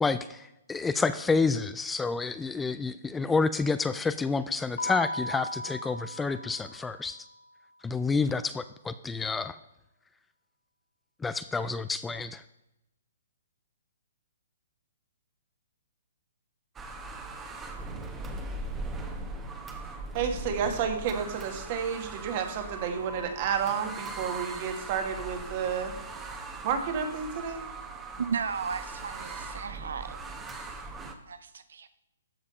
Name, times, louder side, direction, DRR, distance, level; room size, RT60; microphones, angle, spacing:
voice 1, 0.0-7.2 7.8-9.6 11.2-12.4, left 4 dB, 10° left, 0.3 m, -29 dB
Keyboard (musical), 4.8-7.3, equal, 85° left, 0.8 m, -37 dB
sound 1, 16.8-31.1, right 3 dB, 15° right, 1.1 m, -40 dB
voice 2, 20.1-25.9 26.6-27.7, right 7 dB, 40° right, 1.7 m, -31 dB
voice 3, 28.2-30.2 31.3-31.9, right 6 dB, 75° right, 0.5 m, -34 dB
13.5 x 5.1 x 5.6 m
hypercardioid pair, 145°, 0 cm